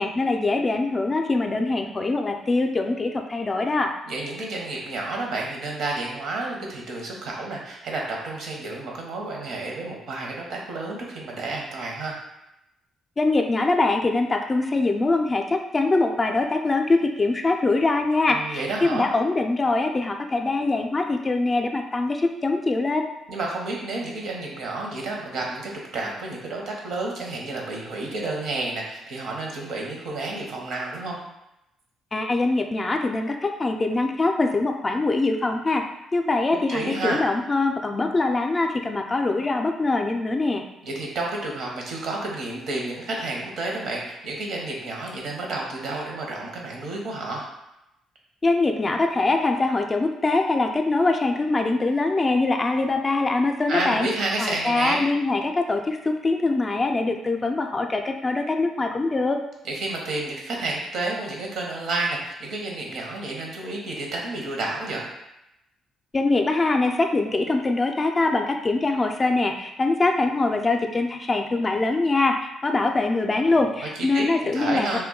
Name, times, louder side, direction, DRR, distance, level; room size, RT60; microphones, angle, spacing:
voice 1, 0.0-3.9 13.2-23.1 32.1-35.8 36.1-40.6 48.4-54.1 54.4-59.4 66.1-75.0, left 3 dB, 30° left, 4 dB, 0.3 m, -23 dB
voice 2, 4.1-12.2 18.3-19.1 23.3-31.2 36.7-37.2 40.8-47.4 53.7-55.0 59.6-65.1 73.5-73.7 74.1-75.0, right 2 dB, 70° right, -1 dB, 0.7 m, -30 dB
2.2 x 2.1 x 3.7 m, 0.87 s
supercardioid pair, 65°, 0 cm